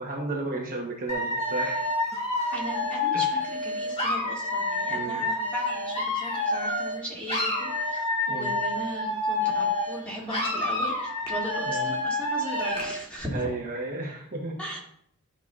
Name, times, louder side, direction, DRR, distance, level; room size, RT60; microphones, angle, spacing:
voice 1, 0.0-1.8 3.1-3.3 4.9-5.3 8.3-8.5 11.6-11.9 13.3-14.6, right 2 dB, 40° right, -2 dB, 1.2 m, -33 dB
Dog / Alarm, 1.1-7.0 7.3-10.0 10.3-13.0, left 2 dB, 25° left, 1.7 m, -28 dB
voice 2, 2.5-13.4 14.6-14.8, equal, 5° left, -5 dB, 2.4 m, -38 dB
12.0 x 5.6 x 2.5 m, 0.67 s
head